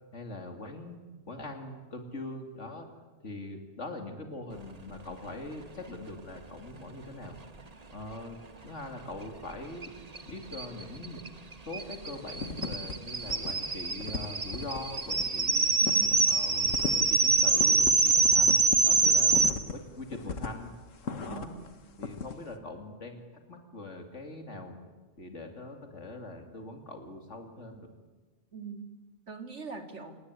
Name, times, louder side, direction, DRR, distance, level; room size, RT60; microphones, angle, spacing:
voice 1, 0.1-1.0 1.3-2.9 3.2-7.4 7.9-8.4 8.6-9.9 10.3-11.2 11.6-15.7 16.2-20.7 21.2-21.5 22.0-24.8 25.2-27.9, left 2 dB, 70° left, 5 dB, 3.1 m, -42 dB
sound 1, 9.8-9.9 10.1-10.2 10.5-19.5, right 3 dB, 30° right, 1.4 m, -25 dB
sound 2, 11.7-12.0 12.3-12.9 13.2-13.5 13.8-21.7 22.0-22.4, left 5 dB, 90° left, 1.8 m, -37 dB
voice 2, 15.8-16.3 21.3-21.6 28.5-28.9 29.3-30.2, right 5 dB, 65° right, 7 dB, 2.8 m, -42 dB
28.0 x 19.0 x 9.8 m, 1.3 s
omnidirectional pair, 1.3 m